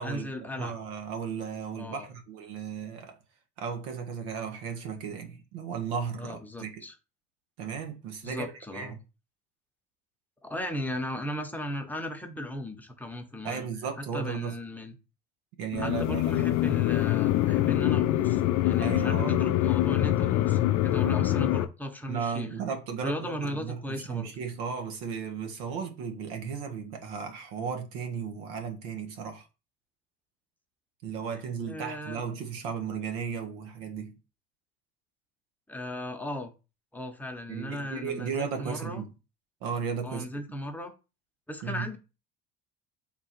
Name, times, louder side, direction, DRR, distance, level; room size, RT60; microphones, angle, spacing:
voice 1, 0.0-0.8 1.8-2.1 6.2-6.9 8.2-9.0 10.4-13.6 14.1-14.9 15.8-22.5 23.0-24.3 31.6-32.2 35.7-36.5 36.9-39.0 40.0-40.9 41.5-42.0, left 1 dB, 5° left, 0.9 m, -37 dB
voice 2, 0.6-3.2 3.6-6.8 7.6-9.0 13.4-14.6 15.6-16.5 18.7-19.4 22.1-29.5 31.0-34.2 37.5-39.1 39.6-40.3 41.6-41.9, right 6 dB, 80° right, 0.9 m, -35 dB
sound 1, 15.7-21.6, left 14 dB, 65° left, 0.4 m, -25 dB
3.7 x 2.4 x 4.3 m
supercardioid pair, 85°, 31 cm